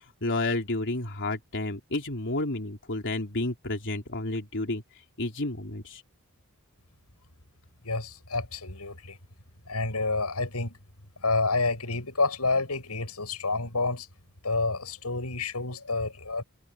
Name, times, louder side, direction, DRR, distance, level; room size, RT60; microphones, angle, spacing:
voice 1, 0.0-4.8 5.2-6.0, left 2 dB, 55° left, 3.7 m, -31 dB
voice 2, 7.8-9.2 9.7-10.8 11.2-14.1 14.4-16.4, left 3 dB, 90° left, 7.5 m, -29 dB
head